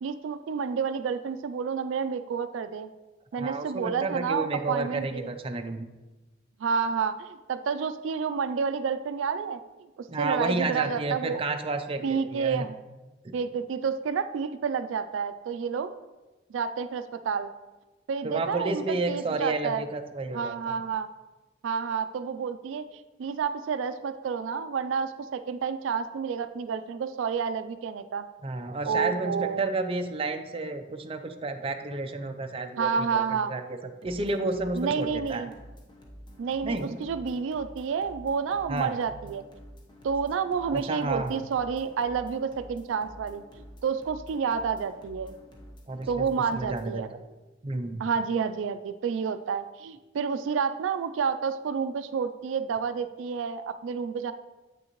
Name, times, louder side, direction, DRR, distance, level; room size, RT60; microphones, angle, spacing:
voice 1, 0.0-2.9 3.3-5.3 6.6-9.6 10.0-11.4 12.0-12.7 13.3-15.9 16.5-17.5 18.1-19.8 20.3-21.1 21.6-28.3 28.8-29.7 32.8-33.5 34.7-35.5 36.4-39.4 40.0-43.5 43.8-45.3 46.1-47.1 48.0-54.3, right 6 dB, 85° right, 11 dB, 0.3 m, -29 dB
voice 2, 3.3-5.9 10.1-12.7 18.2-20.7 28.4-33.6 34.0-35.4 36.6-37.0 38.7-38.9 40.7-41.4 45.9-47.0 47.6-48.0, right 2 dB, 30° right, 6 dB, 0.5 m, -31 dB
sound 1, 34.0-46.9, equal, 25° left, 0.9 m, -49 dB
8.5 x 6.3 x 3.0 m, 1.1 s
head